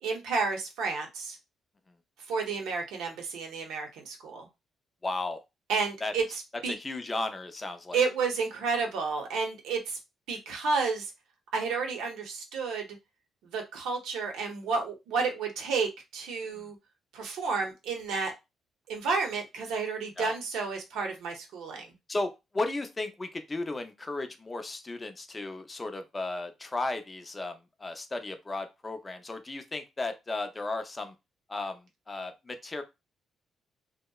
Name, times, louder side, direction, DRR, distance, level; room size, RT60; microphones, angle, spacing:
voice 1, 0.0-1.4 2.3-4.5 5.7-6.7 7.9-10.0 10.3-11.1 11.5-12.9 13.4-16.8 17.1-18.3 18.9-21.9, right 4 dB, 85° right, 3 dB, 0.7 m, -31 dB
voice 2, 5.0-5.4 6.0-6.1 6.7-8.0 16.5-16.7 20.2-20.3 22.1-31.1 31.5-32.8, left 2 dB, 25° left, 7 dB, 0.5 m, -35 dB
2.7 x 2.0 x 2.2 m, 0.23 s
cardioid pair, 90°, 0 cm